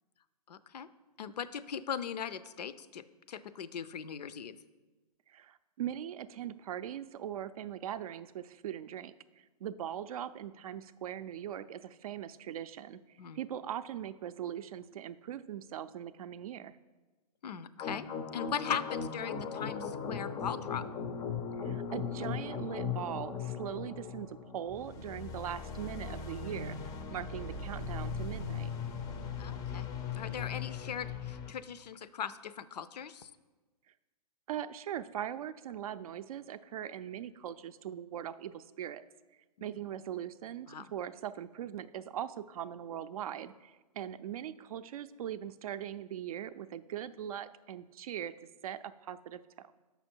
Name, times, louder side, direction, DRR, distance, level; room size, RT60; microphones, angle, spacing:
voice 1, 0.5-0.9 1.2-4.6 13.2-13.4 17.4-18.1 18.3-20.8 29.4-33.3 39.6-39.8 40.7-40.9, left 8 dB, 80° left, 15 dB, 0.5 m, -39 dB
voice 2, 5.3-13.0 13.3-16.8 21.6-28.7 34.5-39.0 39.6-48.3 48.6-49.7, right 10 dB, 60° right, 13 dB, 0.4 m, -40 dB
sound 1, 17.8-31.5, left 6 dB, 15° left, 0.4 m, -38 dB
6.9 x 5.6 x 4.4 m, 1.2 s
hypercardioid pair, 135°, 21 cm